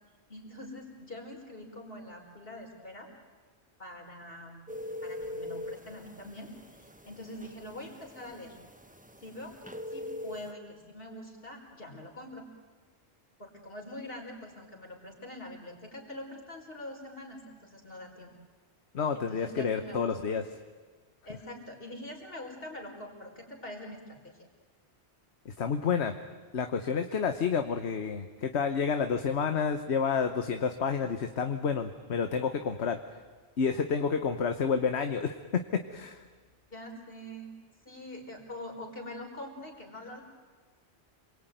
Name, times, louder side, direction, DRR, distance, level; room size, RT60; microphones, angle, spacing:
voice 1, 0.3-3.1 3.8-4.7 5.0-6.5 6.8-8.6 9.2-12.5 13.4-18.3 19.1-20.4 21.2-24.5 36.7-37.6 37.8-40.2, left 1 dB, 60° left, 1 dB, 5.0 m, -44 dB
sound 1, 4.7-10.5, left 2 dB, 10° right, 1.1 m, -42 dB
voice 2, 18.9-20.5 25.4-26.1 26.5-33.0 33.6-36.2, left 6 dB, 80° left, 7 dB, 1.4 m, -29 dB
28.5 x 22.0 x 9.3 m, 1.4 s
omnidirectional pair, 1.1 m